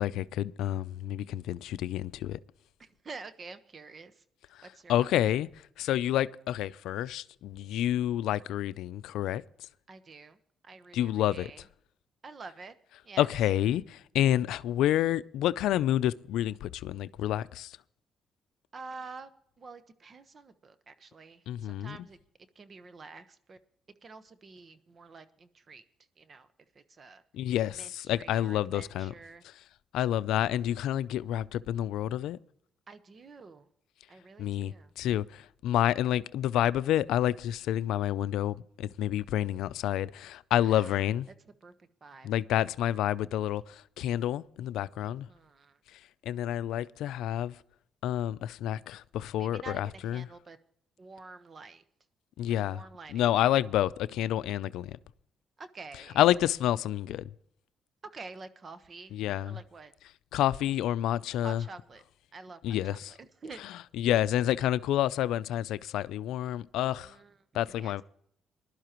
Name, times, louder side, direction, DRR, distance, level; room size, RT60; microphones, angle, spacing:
voice 1, 0.0-2.4 4.9-5.5 5.8-9.4 10.9-11.5 13.2-17.7 21.5-22.0 27.3-29.1 29.9-32.4 34.4-41.3 42.2-45.3 46.3-47.5 48.0-50.3 52.4-52.8 53.1-55.0 56.2-57.3 59.1-59.6 60.3-61.6 62.6-63.1 64.0-67.1 67.5-68.0, left 12 dB, 85° left, 0.4 m, -29 dB
voice 2, 2.8-4.2 4.6-5.3 9.9-10.4 10.6-11.6 12.2-12.8 13.0-13.3 18.7-19.3 19.6-22.2 22.5-23.6 24.0-25.8 26.2-26.5 26.7-27.2 27.7-29.4 32.9-33.7 34.1-34.9 40.6-41.3 41.6-42.3 45.0-45.8 49.4-50.6 51.0-51.8 52.5-53.3 55.6-56.2 58.0-59.2 59.5-59.9 61.4-62.0 62.3-63.6 67.0-68.0, right 4 dB, 40° right, 1.2 m, -48 dB
20.5 x 12.0 x 3.0 m
cardioid pair, 90°, 0 cm